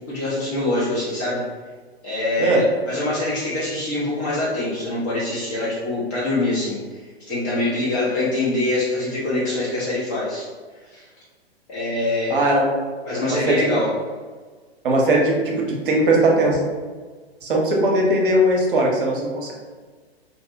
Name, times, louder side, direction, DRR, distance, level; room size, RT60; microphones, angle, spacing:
voice 1, 0.1-1.4 2.0-7.0 7.3-10.5 10.9-11.0 11.7-12.4 13.0-13.9, left 2 dB, 20° left, -8 dB, 0.3 m, -24 dB
voice 2, 12.3-12.7 13.2-13.8 14.8-16.6 17.4-19.5, right 1 dB, 55° right, -1 dB, 0.7 m, -19 dB
2.7 x 2.1 x 2.6 m, 1.5 s
figure-of-eight pair, 105°, 32 cm